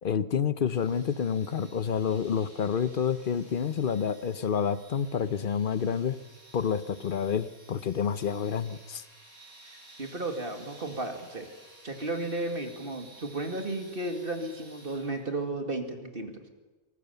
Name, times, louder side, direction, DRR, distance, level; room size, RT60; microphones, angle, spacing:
voice 1, 0.0-6.2 6.5-9.0, left 7 dB, 45° left, 15 dB, 0.9 m, -29 dB
sound 1, 0.7-15.4, right 2 dB, 70° right, 6.7 m, -54 dB
voice 2, 9.6-11.5 11.8-16.5, right 2 dB, 45° right, 5 dB, 2.3 m, -34 dB
23.0 x 18.5 x 6.9 m, 1.2 s
omnidirectional pair, 1.3 m